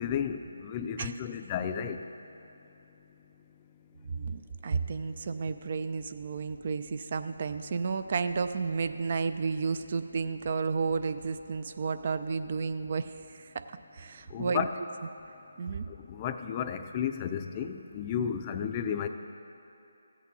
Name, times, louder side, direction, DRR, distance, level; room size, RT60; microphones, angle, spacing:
voice 1, 0.0-2.1 14.3-14.7 15.9-19.1, left 8 dB, 25° left, 7 dB, 0.5 m, -33 dB
voice 2, 4.0-13.7 13.9-14.7 15.6-15.9, right 5 dB, 45° right, 10 dB, 0.4 m, -32 dB
15.0 x 8.4 x 4.2 m, 3.0 s
figure-of-eight pair, 150°, 0 cm